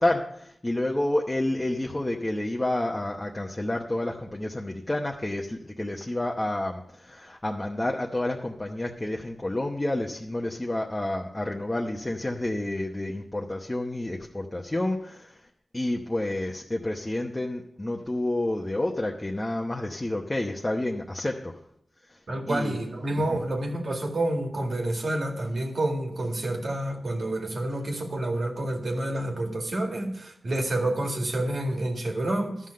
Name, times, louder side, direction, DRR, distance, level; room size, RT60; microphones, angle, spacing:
voice 1, 0.0-15.4 15.7-21.6 22.5-22.8 23.3-23.4, left 1 dB, 20° left, 0 dB, 0.9 m, -29 dB
voice 2, 22.3-32.6, right 1 dB, 70° right, 1 dB, 2.0 m, -28 dB
12.5 x 5.8 x 6.5 m, 0.73 s
wide cardioid pair, 70°, 0 cm